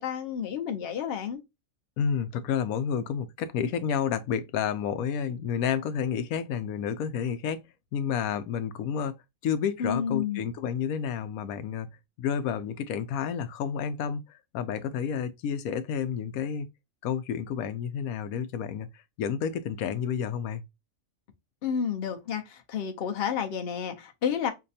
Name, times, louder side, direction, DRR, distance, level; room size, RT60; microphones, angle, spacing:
voice 1, 0.0-1.4 9.8-10.4 21.6-24.5, left 7 dB, 50° left, 0.9 m, -30 dB
voice 2, 2.0-7.6 7.9-9.1 9.4-11.9 12.2-14.2 14.5-16.7 17.0-20.7, left 7 dB, 85° left, 1.0 m, -30 dB
4.9 x 2.2 x 2.6 m
omnidirectional pair, 1.5 m